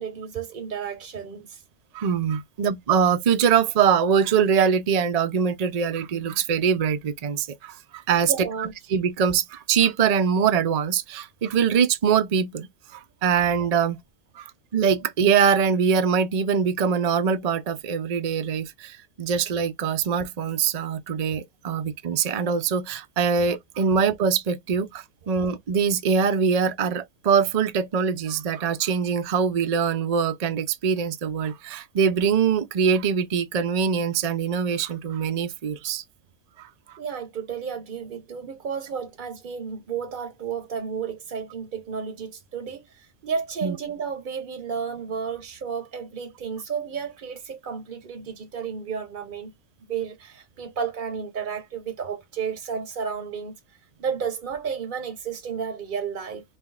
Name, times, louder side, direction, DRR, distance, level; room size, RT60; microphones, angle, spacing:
voice 1, 0.0-1.6 8.2-8.7 21.7-21.8 37.0-49.5 49.8-56.4, right 6 dB, 45° right, 0.7 m, -32 dB
voice 2, 1.9-8.3 8.6-14.0 14.4-36.0 36.6-36.7 43.6-43.7, right 6 dB, 70° right, 0.3 m, -23 dB
5.4 x 2.7 x 2.3 m
omnidirectional pair, 1.5 m